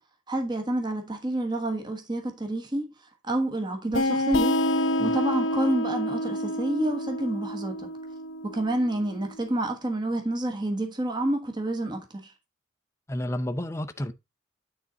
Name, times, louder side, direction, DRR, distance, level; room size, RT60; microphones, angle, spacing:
voice 1, 0.3-2.9 3.2-4.6 5.0-7.9 8.4-12.3, right 1 dB, 20° right, 1.2 m, -28 dB
sound 1, 3.9-9.3, left 1 dB, 85° left, 0.8 m, -28 dB
voice 2, 13.1-14.1, left 1 dB, 15° left, 0.5 m, -31 dB
9.5 x 4.0 x 3.9 m
head